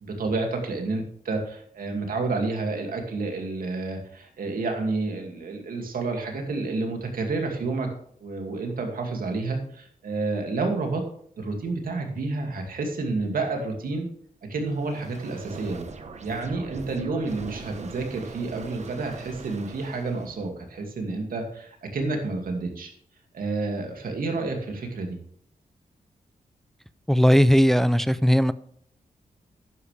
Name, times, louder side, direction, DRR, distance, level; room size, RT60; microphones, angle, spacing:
voice 1, 0.0-7.9 8.2-11.0 11.4-14.1 14.5-15.9 16.2-22.9 23.3-25.2, right 3 dB, 80° right, 3 dB, 2.3 m, -29 dB
sound 1, 14.7-20.4, right 4 dB, 50° right, 1.1 m, -41 dB
voice 2, 27.1-28.5, equal, ahead, 14 dB, 0.4 m, -18 dB
11.5 x 9.7 x 3.4 m, 0.64 s
wide cardioid pair, 135°, 15 cm